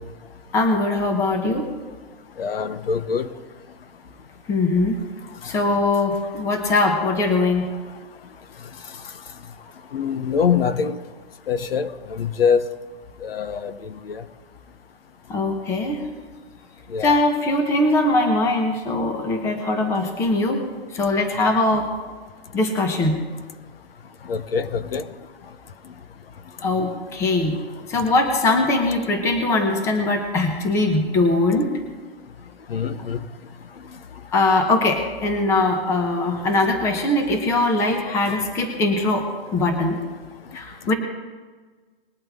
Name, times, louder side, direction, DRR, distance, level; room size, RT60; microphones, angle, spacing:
voice 1, 0.5-1.7 4.5-5.0 5.4-7.7 15.3-16.1 17.0-20.6 20.9-21.9 22.5-23.2 26.6-27.6 27.9-31.7 34.3-40.0 40.5-40.9, left 2 dB, 10° left, 1.0 m, -21 dB
voice 2, 2.4-3.3 9.9-11.0 11.5-12.6 13.2-13.7 14.1-14.2 16.9-17.1 24.3-25.0 32.7-33.2, left 6 dB, 65° left, 1.0 m, -23 dB
20.5 x 8.6 x 3.7 m
hypercardioid pair, 160°, 31 cm